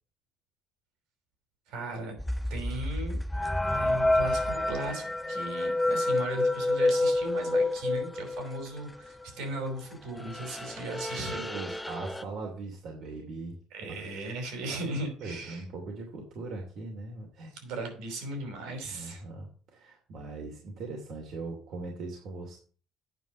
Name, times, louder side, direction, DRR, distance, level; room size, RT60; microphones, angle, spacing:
voice 1, 1.7-2.2 2.5-3.2 3.6-11.5 13.7-15.6 17.5-19.2, right 2 dB, 85° right, 4 dB, 5.1 m, -37 dB
sound 1, 2.2-8.8 9.0-9.8 10.1-12.2, left 2 dB, 10° left, 0.7 m, -29 dB
voice 2, 11.1-13.6 13.9-14.0 14.6-17.5 18.9-22.6, right 3 dB, 65° right, 0 dB, 2.8 m, -40 dB
9.3 x 5.2 x 8.0 m, 0.42 s
cardioid pair, 105°, 0 cm